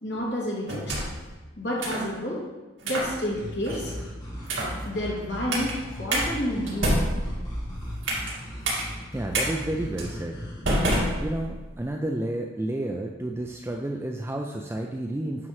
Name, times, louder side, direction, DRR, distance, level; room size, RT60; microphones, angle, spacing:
voice 1, 0.0-1.0 1.6-2.5 2.8-3.9 4.8-7.2, equal, 65° left, -5 dB, 2.5 m, -30 dB
sound 1, 0.7-1.3 1.8-2.1 2.8-3.1 3.6-3.9 4.4-4.8 5.5-5.7 6.1-6.2 6.7-8.3 8.6-8.8 9.3-9.5 10.0-10.1 10.6-11.7, right 1 dB, 75° right, 2.2 m, -27 dB
sound 2, 3.0-10.6, equal, 20° left, 1.5 m, -37 dB
voice 2, 9.1-10.4 11.2-15.5, right 1 dB, 15° right, 2 dB, 0.4 m, -31 dB
9.6 x 6.0 x 3.2 m, 1.2 s
head